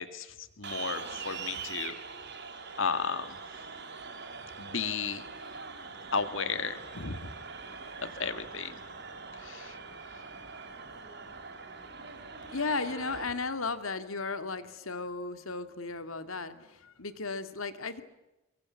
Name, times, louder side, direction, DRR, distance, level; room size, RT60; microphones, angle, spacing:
voice 1, 0.0-2.0 2.8-3.4 4.6-5.2 6.1-7.3 8.1-8.8 9.4-9.8, left 5 dB, 65° left, 11 dB, 1.9 m, -34 dB
sound 1, 0.6-13.2, right 5 dB, 55° right, 5.1 m, -43 dB
voice 2, 12.4-18.0, left 3 dB, 90° left, 10 dB, 2.1 m, -35 dB
24.0 x 23.0 x 8.5 m, 1.0 s
head